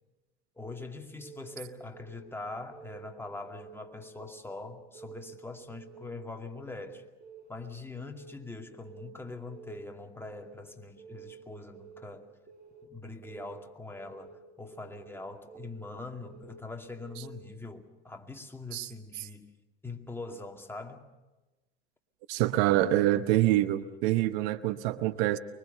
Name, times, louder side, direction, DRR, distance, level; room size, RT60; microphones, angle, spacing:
voice 1, 0.6-7.0 7.5-12.3 12.8-19.5 19.8-21.1, left 3 dB, 5° left, 2.4 m, -43 dB
Keyboard (musical) / Alarm, 1.2-1.6 1.9-2.3 2.7-3.1 3.4-3.8 4.2-4.6 5.0-5.3 5.7-6.1 6.5-6.8 7.2-7.6 8.0-8.3 8.7-9.1 9.5-9.8 10.2-10.6 11.0-11.3 11.7-12.1 12.5-12.9 13.2-13.6 14.0-14.4 14.7-15.1 15.5-15.9 16.2-16.6 17.0-17.4, right 6 dB, 30° right, 5.4 m, -50 dB
voice 2, 22.3-25.4, right 15 dB, 65° right, 1.0 m, -26 dB
24.5 x 23.0 x 6.7 m
hypercardioid pair, 80°, 34 cm